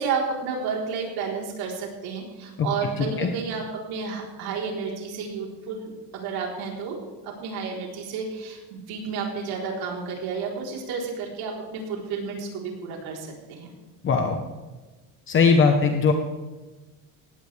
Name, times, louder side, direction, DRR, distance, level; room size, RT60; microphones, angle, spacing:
voice 1, 0.0-7.0 7.2-13.7, right 5 dB, 65° right, -1 dB, 4.0 m, -31 dB
voice 2, 3.0-3.3 14.0-14.4 15.3-16.1, left 5 dB, 30° left, 5 dB, 1.1 m, -20 dB
18.5 x 16.5 x 3.5 m, 1.2 s
cardioid pair, 155°, 40 cm